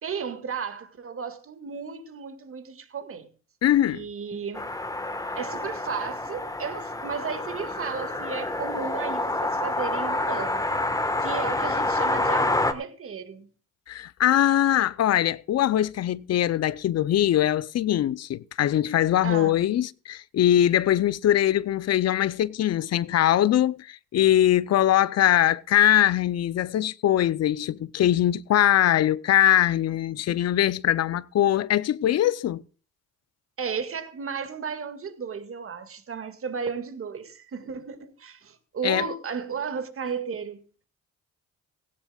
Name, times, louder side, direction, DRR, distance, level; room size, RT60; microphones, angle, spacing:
voice 1, 0.0-3.3 3.9-4.7 5.4-10.6 10.9-13.5 19.2-19.5 33.6-40.6, right 6 dB, 45° right, 2.0 m, -34 dB
voice 2, 3.6-4.1 13.9-32.6 38.8-39.1, left 12 dB, 55° left, 0.6 m, -22 dB
sound 1, 4.5-12.7, left 2 dB, 10° left, 1.4 m, -28 dB
17.0 x 16.0 x 2.4 m
cardioid pair, 90°, 30 cm